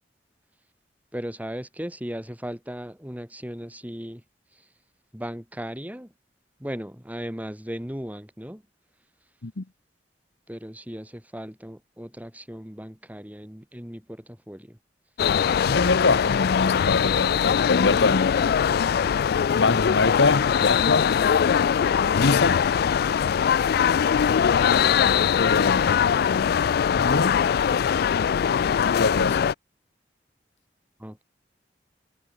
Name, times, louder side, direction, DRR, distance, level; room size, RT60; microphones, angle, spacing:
voice 1, 1.1-4.2 5.1-6.1 6.6-8.6 10.5-14.8 25.5-25.8 31.0-31.2, equal, 10° right, 6.7 m, -37 dB
sound 1, 15.2-29.5, left 7 dB, 60° left, 0.3 m, -21 dB
voice 2, 15.7-18.3 19.6-21.2 22.2-22.7 25.4-26.0 27.0-27.4 28.9-29.5, left 3 dB, 80° left, 1.1 m, -24 dB
head